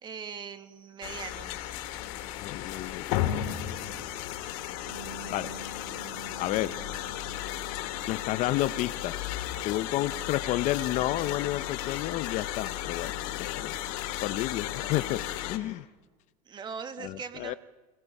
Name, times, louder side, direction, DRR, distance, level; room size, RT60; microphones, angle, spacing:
voice 1, 0.0-1.5 16.5-17.6, right 6 dB, 25° right, 9 dB, 1.5 m, -40 dB
sound 1, 1.0-15.6, left 13 dB, 65° left, 2.0 m, -34 dB
voice 2, 2.4-3.3 5.3-5.5 6.4-6.8 8.1-9.2 9.6-13.8 14.2-15.9 17.0-17.5, left 15 dB, 40° left, 15 dB, 0.6 m, -31 dB
Bass guitar, 4.9-9.6 9.9-11.1, right 6 dB, 55° right, 7.0 m, -50 dB
28.5 x 19.0 x 5.4 m, 1.3 s
supercardioid pair, 155°, 19 cm